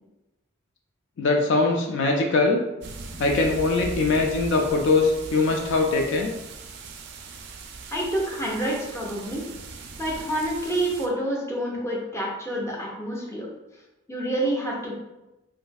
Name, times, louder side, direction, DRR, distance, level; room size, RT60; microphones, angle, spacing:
voice 1, 1.2-2.6 3.2-6.3, left 3 dB, 65° left, 2 dB, 0.4 m, -22 dB
sound 1, 2.8-11.1, right 3 dB, 60° right, 0.4 m, -39 dB
voice 2, 7.9-9.4 10.0-13.5 14.1-14.9, right 1 dB, 15° left, -4 dB, 0.6 m, -28 dB
3.0 x 2.6 x 2.2 m, 0.99 s
head